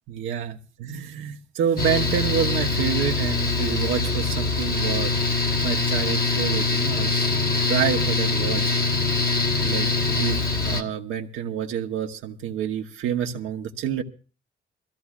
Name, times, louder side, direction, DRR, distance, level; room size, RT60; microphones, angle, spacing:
voice 1, 0.1-5.1 5.6-7.3 7.7-8.7 9.6-14.0, right 9 dB, 85° right, 3 dB, 1.0 m, -28 dB
Mechanical fan, 1.8-10.8, left 3 dB, 50° left, 1.4 m, -23 dB
22.5 x 15.0 x 2.4 m, 0.35 s
cardioid pair, 90°, 20 cm